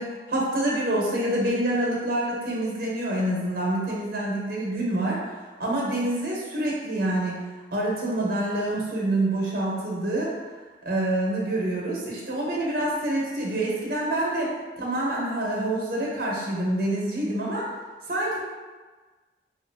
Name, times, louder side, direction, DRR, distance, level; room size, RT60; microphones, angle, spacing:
voice 1, 0.0-5.2 5.6-7.4 7.7-10.3 10.8-17.7 18.1-18.4, right 1 dB, 55° right, -4 dB, 0.8 m, -26 dB
3.0 x 2.6 x 2.7 m, 1.3 s
head